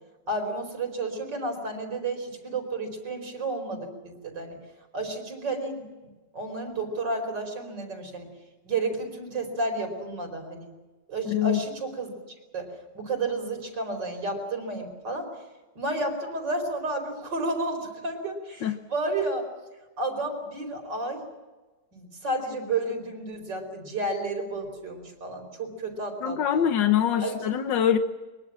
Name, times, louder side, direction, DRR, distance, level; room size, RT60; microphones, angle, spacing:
voice 1, 0.3-4.6 4.9-8.3 8.7-10.7 11.1-12.1 12.5-15.3 15.8-19.4 20.0-21.2 21.9-26.7 27.2-27.5, right 2 dB, 75° right, 5 dB, 5.3 m, -31 dB
voice 2, 11.3-11.6 18.6-18.8 26.2-28.0, left 10 dB, 90° left, 8 dB, 1.7 m, -24 dB
23.5 x 23.0 x 7.5 m, 1.2 s
omnidirectional pair, 1.9 m